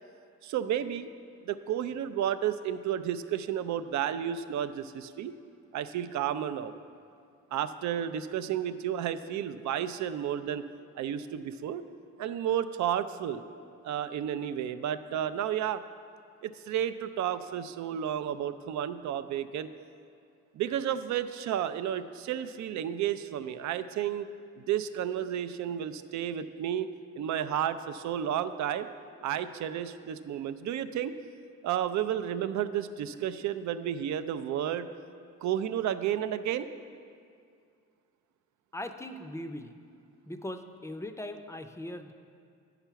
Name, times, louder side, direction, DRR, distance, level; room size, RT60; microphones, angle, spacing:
voice 1, 0.4-1.1 1.5-5.3 5.7-6.7 7.5-10.6 11.0-11.9 12.2-13.4 13.8-15.8 16.4-19.7 20.5-24.3 24.7-28.9 29.2-31.1 31.6-34.9 35.4-36.7, right 10 dB, 70° right, 11 dB, 0.5 m, -32 dB
voice 2, 38.7-39.7 40.3-42.1, left 1 dB, 10° left, 7 dB, 0.5 m, -39 dB
9.0 x 5.8 x 5.7 m, 2.3 s
cardioid pair, 90°, 30 cm